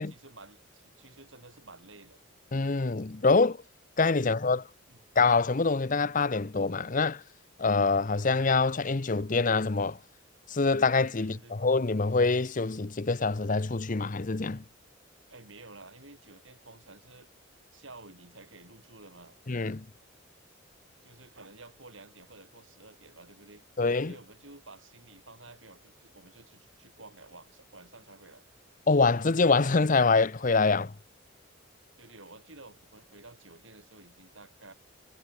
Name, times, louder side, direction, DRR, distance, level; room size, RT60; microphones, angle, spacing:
voice 1, 0.0-2.2 4.2-4.4 4.9-5.0 11.2-11.6 15.3-17.3 17.7-19.4 21.0-23.6 24.0-28.5 32.0-34.7, right 2 dB, 70° right, 7.3 m, -52 dB
voice 2, 2.5-3.6 4.0-4.6 5.2-7.2 7.6-10.0 10.5-14.6 19.5-19.8 23.8-24.1 28.9-30.9, left 4 dB, 40° left, 0.7 m, -25 dB
head